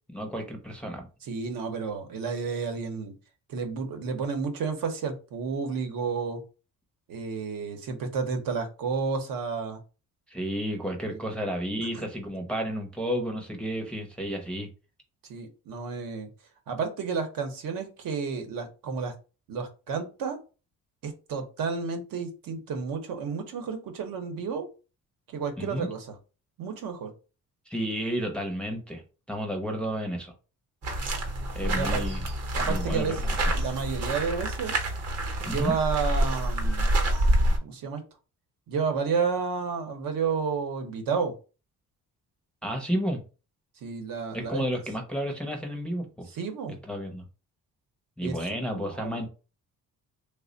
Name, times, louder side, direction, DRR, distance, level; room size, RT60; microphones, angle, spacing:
voice 1, 0.1-1.1 10.3-14.7 25.6-25.9 27.7-29.0 29.3-30.3 31.5-32.2 32.7-33.4 35.5-35.7 42.6-43.2 44.3-46.3 46.9-47.3 48.2-49.3, equal, 5° left, 1 dB, 0.4 m, -31 dB
voice 2, 1.2-3.1 3.5-6.4 7.1-9.8 11.1-11.4 11.9-12.1 15.3-16.3 16.7-19.1 19.5-20.4 21.0-24.7 25.3-26.1 26.6-27.1 31.6-32.0 32.6-34.7 35.4-36.9 37.6-38.0 38.7-41.3 43.8-44.6 46.3-46.8 48.2-48.4 48.7-49.2, right 5 dB, 80° right, 6 dB, 0.8 m, -31 dB
sound 1, 30.8-37.6, right 1 dB, 45° right, 0.8 m, -27 dB
3.3 x 2.1 x 3.8 m, 0.33 s
cardioid pair, 165°, 33 cm